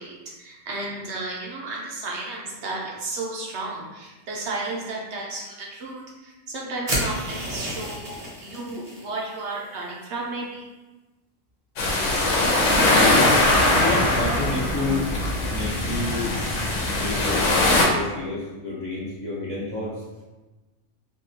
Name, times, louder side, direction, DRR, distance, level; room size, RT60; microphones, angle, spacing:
voice 1, 0.0-10.7, right 2 dB, 65° right, -2 dB, 0.8 m, -33 dB
sound 1, 6.9-9.0, equal, 35° right, 0.8 m, -30 dB
sound 2, 11.8-17.8, left 2 dB, 80° left, 1.0 m, -21 dB
voice 2, 13.8-15.1 15.5-16.3 16.9-20.2, left 2 dB, 45° left, -7 dB, 0.7 m, -30 dB
3.6 x 2.3 x 2.7 m, 1.2 s
omnidirectional pair, 1.3 m